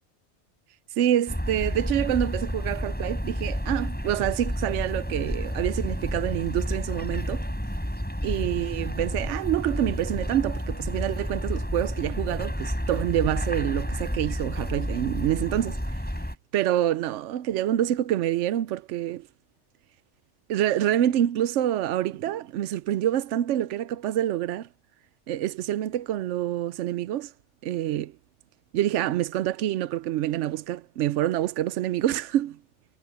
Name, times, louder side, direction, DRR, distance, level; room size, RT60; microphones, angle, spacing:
voice 1, 0.9-7.5 8.2-16.0 16.5-19.3 20.5-24.7 25.3-27.3 27.6-28.1 28.7-32.6, right 12 dB, 85° right, 0.9 m, -27 dB
sound 1, 1.3-16.4, equal, 10° left, 5.4 m, -30 dB
omnidirectional pair, 1.2 m